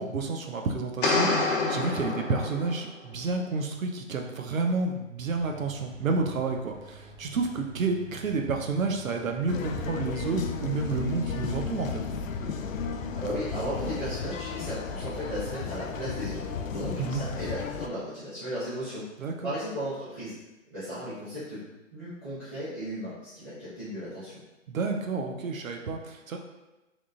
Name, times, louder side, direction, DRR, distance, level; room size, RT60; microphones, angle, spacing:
voice 1, 0.0-12.0 17.0-17.2 19.2-19.5 24.7-26.4, right 4 dB, 80° right, 3 dB, 0.8 m, -30 dB
sound 1, 1.0-2.9, left 3 dB, 40° left, 0.8 m, -27 dB
sound 2, 5.3-16.8, right 2 dB, 35° right, 0.9 m, -50 dB
sound 3, 9.5-17.9, left 6 dB, 80° left, 0.5 m, -34 dB
voice 2, 13.1-19.0 19.4-20.4 20.7-24.4, equal, 10° right, -19 dB, 0.5 m, -35 dB
3.7 x 3.6 x 2.4 m, 1.0 s
hypercardioid pair, 155°, 39 cm